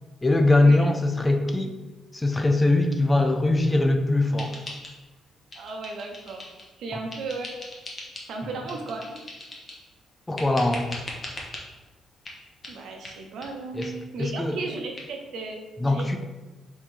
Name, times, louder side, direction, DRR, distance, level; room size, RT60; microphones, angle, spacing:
voice 1, 0.2-1.7 2.1-4.6 10.3-10.9 13.7-13.9 14.2-14.6 15.8-16.2, left 2 dB, 15° left, 5 dB, 0.5 m, -21 dB
sound 1, 4.4-5.2 5.5-6.7 7.1-8.3 8.7-9.9 10.4-11.6 12.3-12.4 12.6-12.8 13.0-13.2 13.4-13.5 13.8-13.9 14.2-14.3 14.6-14.7 15.0-15.1, left 2 dB, 35° left, 1.0 m, -40 dB
voice 2, 5.5-6.5 6.8-7.5 8.3-9.2 12.7-16.2, right 3 dB, 75° right, 2 dB, 0.7 m, -35 dB
3.7 x 2.7 x 4.6 m, 1.1 s
cardioid pair, 90°, 0 cm